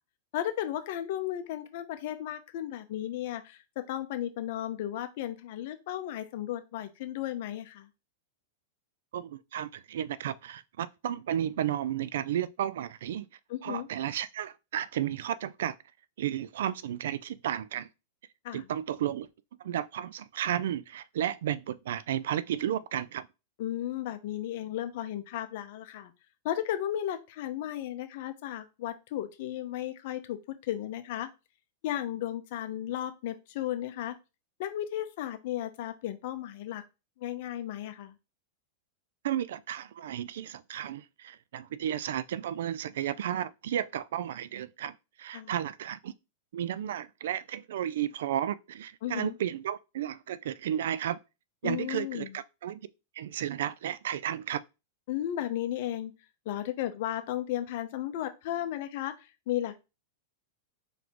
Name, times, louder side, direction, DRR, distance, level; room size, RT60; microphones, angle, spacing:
voice 1, 0.3-3.6 3.9-7.9 13.5-13.9 18.4-18.6 23.6-26.1 26.4-30.4 30.6-31.3 31.8-34.2 34.6-36.8 37.2-38.1 45.3-45.5 49.0-49.3 51.6-52.3 55.1-56.1 56.5-59.8, left 12 dB, 60° left, 0.7 m, -34 dB
voice 2, 9.1-13.3 13.6-15.8 16.2-17.9 18.5-19.3 19.6-23.3 39.2-46.1 46.5-51.2 51.6-52.8 53.2-54.6, right 10 dB, 75° right, 0.3 m, -33 dB
4.1 x 3.3 x 2.9 m
hypercardioid pair, 130°, 0 cm